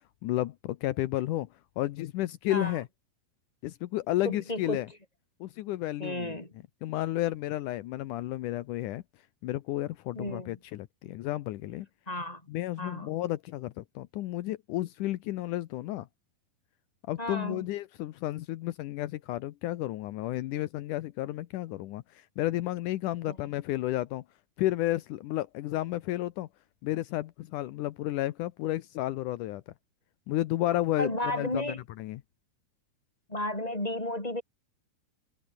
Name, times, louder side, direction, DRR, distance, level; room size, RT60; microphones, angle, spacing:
voice 1, 0.2-1.5 1.8-2.9 3.6-4.9 5.4-6.4 6.8-9.0 9.4-11.9 12.5-16.1 17.1-24.2 24.6-26.5 26.8-29.6 30.3-31.7 32.0-32.2, left 15 dB, 80° left, 1.8 m, -32 dB
voice 2, 4.2-4.8 6.0-6.5 10.2-10.5 12.1-12.4 12.8-13.2 17.2-17.7 23.3-23.4 31.0-31.8 33.3-34.4, left 1 dB, 10° left, 7.4 m, -33 dB
omnidirectional pair, 4.7 m